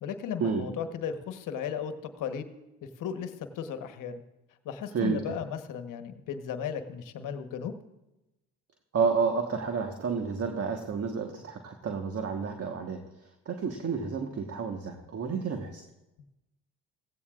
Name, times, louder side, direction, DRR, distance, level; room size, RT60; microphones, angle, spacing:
voice 1, 0.0-2.5 2.8-4.2 4.6-7.7, left 7 dB, 60° left, 8 dB, 1.2 m, -35 dB
voice 2, 8.9-13.0 13.4-15.8, right 5 dB, 45° right, 4 dB, 1.4 m, -30 dB
16.5 x 15.5 x 2.5 m, 0.97 s
hypercardioid pair, 55°, 35 cm